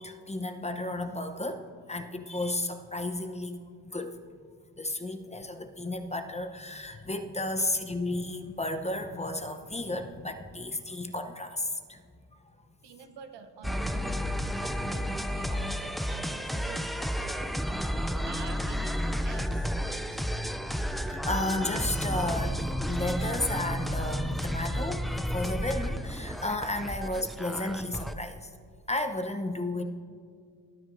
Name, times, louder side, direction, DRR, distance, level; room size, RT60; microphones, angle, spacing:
voice 1, 0.0-1.6 1.9-4.2 4.8-12.0 12.4-12.5 21.1-28.5 28.9-29.8, left 2 dB, 15° left, 6 dB, 0.8 m, -33 dB
voice 2, 12.8-14.3 14.6-16.9 17.2-20.2, right 6 dB, 70° right, 7 dB, 1.0 m, -48 dB
sound 1, 13.6-28.2, equal, ahead, 0.4 m, -32 dB
20.0 x 9.9 x 2.6 m, 2.2 s
supercardioid pair, 65°, 43 cm